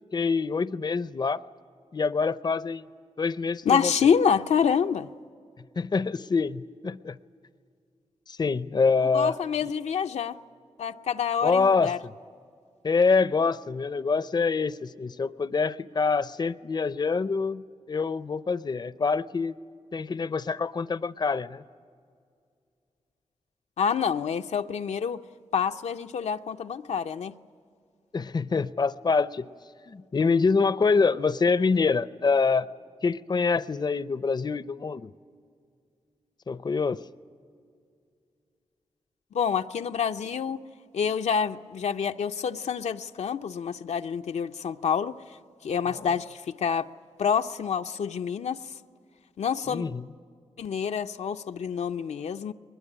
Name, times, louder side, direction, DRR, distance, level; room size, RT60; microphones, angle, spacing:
voice 1, 0.1-1.4 1.9-2.8 3.2-3.9 5.8-7.2 8.3-9.7 11.4-11.9 12.8-19.5 19.9-21.6 28.1-29.4 29.9-32.7 33.0-35.1 36.5-37.0 45.9-46.1 49.7-50.0, left 4 dB, 40° left, 0.6 m, -25 dB
voice 2, 3.7-5.1 9.1-10.4 10.8-12.0 23.8-25.2 25.5-27.3 39.3-40.6 40.9-45.1 45.6-46.9 47.2-48.6 49.4-49.9 50.6-52.5, left 7 dB, 85° left, 0.6 m, -27 dB
21.5 x 20.5 x 10.0 m
cardioid pair, 65°, 11 cm